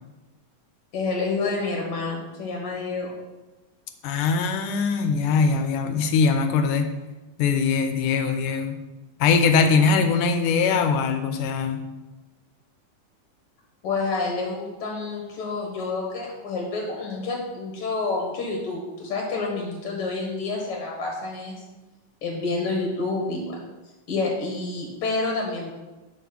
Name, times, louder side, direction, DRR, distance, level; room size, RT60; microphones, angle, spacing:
voice 1, 0.9-3.1 13.8-21.6 22.2-23.6 24.1-25.7, left 3 dB, 55° left, -1 dB, 1.8 m, -28 dB
voice 2, 4.0-6.9 7.4-8.8 9.2-11.8, left 5 dB, 80° left, 7 dB, 2.2 m, -21 dB
10.0 x 4.4 x 6.0 m, 1.1 s
omnidirectional pair, 3.8 m